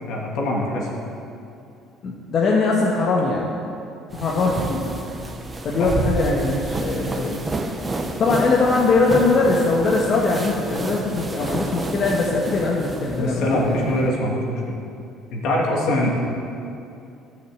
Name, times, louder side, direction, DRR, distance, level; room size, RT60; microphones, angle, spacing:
voice 1, 0.1-0.9 5.8-5.9 13.2-14.6 15.3-16.1, left 1 dB, 70° left, -2 dB, 2.7 m, -23 dB
voice 2, 2.0-3.5 4.1-4.9 5.6-7.4 8.2-13.9, left 3 dB, 45° left, -2 dB, 1.4 m, -21 dB
sound 1, 4.1-14.1, right 2 dB, 20° right, 1.0 m, -30 dB
12.5 x 6.6 x 7.9 m, 2.6 s
cardioid pair, 125°, 0 cm